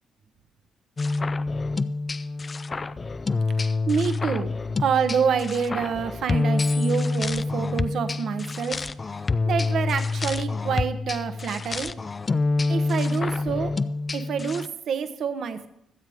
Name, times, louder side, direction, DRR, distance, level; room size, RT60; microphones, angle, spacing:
sound 1, 1.0-14.7, left 3 dB, 30° left, 0.4 m, -27 dB
voice 1, 3.9-4.5 4.8-8.8 9.4-11.9 12.7-13.7 14.1-15.7, right 6 dB, 65° right, 9 dB, 1.0 m, -27 dB
22.5 x 7.6 x 3.5 m, 0.81 s
cardioid pair, 90°, 0 cm